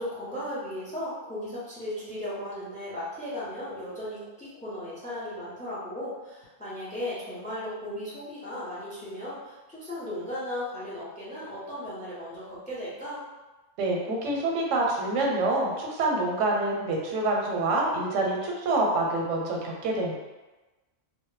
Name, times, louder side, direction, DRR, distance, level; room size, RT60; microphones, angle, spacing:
voice 1, 0.0-13.2, left 1 dB, 10° left, -8 dB, 0.4 m, -36 dB
voice 2, 13.8-20.1, right 2 dB, 85° right, -1 dB, 0.9 m, -26 dB
2.1 x 2.0 x 3.0 m, 1.2 s
omnidirectional pair, 1.2 m